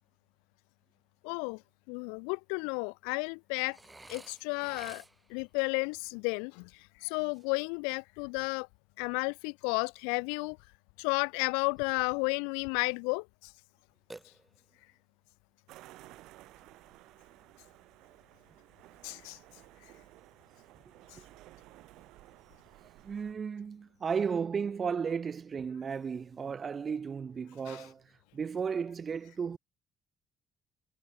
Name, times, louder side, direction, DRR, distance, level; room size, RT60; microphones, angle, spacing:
voice 1, 1.2-1.6 1.9-3.8 4.1-5.0 5.3-8.7 9.0-10.6 11.0-13.5 19.0-19.4 27.7-27.9, left 40 dB or more, 90° left, 0.4 m, -33 dB
Burping eructation, 3.7-5.4 14.1-14.9, right 2 dB, 15° right, 4.7 m, -51 dB
sound 1, 15.7-23.3, right 17 dB, 80° right, 4.0 m, -55 dB
voice 2, 23.0-28.0 28.3-29.6, right 6 dB, 45° right, 0.3 m, -34 dB
supercardioid pair, 65°, 0 cm